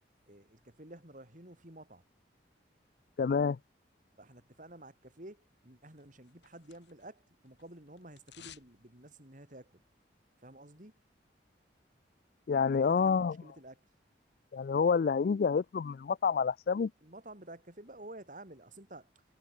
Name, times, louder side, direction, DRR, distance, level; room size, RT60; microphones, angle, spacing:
voice 1, 0.3-2.0 4.2-9.8 10.4-11.0 12.7-13.9 17.0-19.1, right 1 dB, 45° right, 4.2 m, -51 dB
voice 2, 3.2-3.6 12.5-13.4 14.5-16.9, left 5 dB, 55° left, 0.3 m, -28 dB
sound 1, 6.0-7.2 7.5-8.7 9.0-9.1, left 10 dB, 70° left, 2.5 m, -55 dB
head